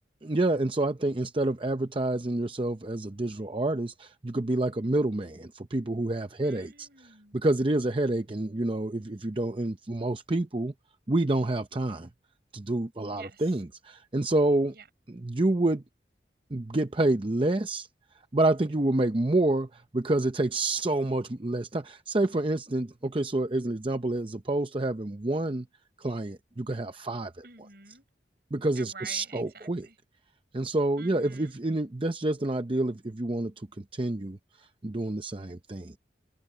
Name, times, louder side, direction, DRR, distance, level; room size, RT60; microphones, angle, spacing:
voice 1, 0.2-6.9 7.3-10.7 11.1-12.1 12.5-14.7 15.1-15.8 16.5-17.9 18.3-25.7 26.0-27.3 28.5-29.9 30.5-36.0, right 2 dB, 30° right, 0.7 m, -28 dB
voice 2, 6.4-7.4 13.1-13.5 14.7-14.9 27.4-28.0 28.7-30.0 31.0-31.6, right 5 dB, 55° right, 7.6 m, -48 dB
head